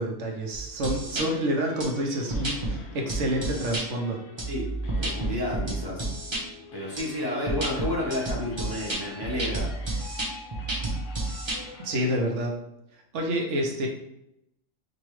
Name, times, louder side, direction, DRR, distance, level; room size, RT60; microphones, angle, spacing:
voice 1, 0.0-4.2 11.8-12.5 13.1-13.9, right 1 dB, 70° right, 1 dB, 1.0 m, -28 dB
sound 1, 0.5-1.2 1.8-1.9 2.3-2.7 3.1-3.8 4.4-6.4 7.0-7.1 7.5-11.6, right 2 dB, 25° right, 0.8 m, -30 dB
sound 2, 1.1-12.2, left 3 dB, 75° left, 1.0 m, -46 dB
voice 2, 4.5-6.1 6.7-9.7 12.0-12.2, left 1 dB, 25° left, -5 dB, 0.7 m, -31 dB
4.9 x 2.3 x 3.1 m, 0.82 s
omnidirectional pair, 1.3 m